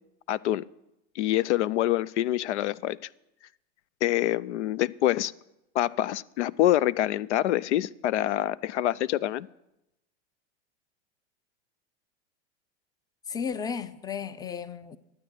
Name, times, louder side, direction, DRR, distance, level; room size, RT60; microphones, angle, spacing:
voice 1, 0.3-0.6 1.2-3.0 4.0-5.3 5.7-9.5, left 13 dB, 75° left, 0.5 m, -26 dB
voice 2, 13.3-15.0, left 6 dB, 10° left, 0.6 m, -34 dB
12.5 x 8.8 x 8.9 m
hypercardioid pair, 105°, 35 cm